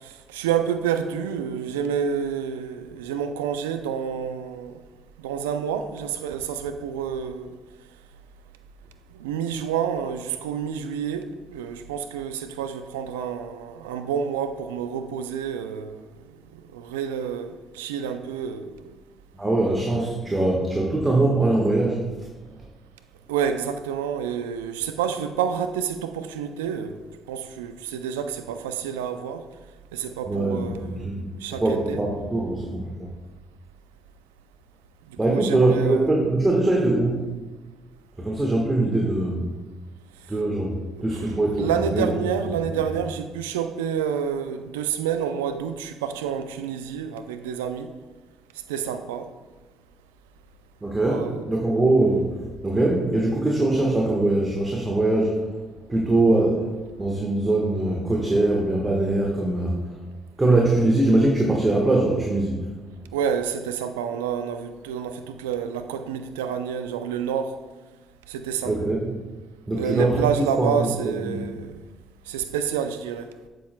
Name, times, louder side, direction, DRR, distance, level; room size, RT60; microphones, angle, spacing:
voice 1, 0.0-4.8 5.2-7.6 9.1-16.0 16.5-19.0 23.3-27.0 27.3-29.5 29.9-32.1 35.3-36.0 40.9-47.9 48.7-49.3 51.1-51.8 63.1-67.6 68.3-68.8 69.7-71.7 72.3-73.3, right 8 dB, 85° right, 0.4 m, -29 dB
voice 2, 19.3-22.1 30.2-31.2 31.6-32.9 35.2-37.2 38.2-39.4 40.3-40.7 41.0-42.3 42.7-42.8 50.8-55.4 55.9-56.7 57.0-59.7 60.4-62.6 68.6-69.1 69.7-71.4, right 2 dB, 25° right, 1.3 m, -22 dB
7.5 x 7.4 x 2.2 m
hypercardioid pair, 45°, 0 cm